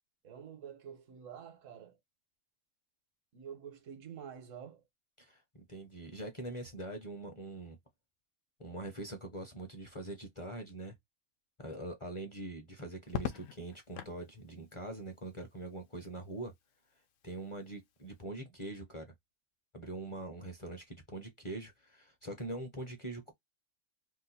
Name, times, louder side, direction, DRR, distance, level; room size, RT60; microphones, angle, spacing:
voice 1, 0.2-2.0 3.3-4.8, right 8 dB, 90° right, 1.2 m, -48 dB
voice 2, 5.2-7.8 8.6-11.0 11.6-16.5 17.2-19.1 19.7-23.3, right 2 dB, 35° left, 0.5 m, -43 dB
Crackle, 13.1-14.2 15.8-16.3, left 8 dB, 80° left, 0.9 m, -40 dB
2.9 x 2.2 x 4.0 m
omnidirectional pair, 1.3 m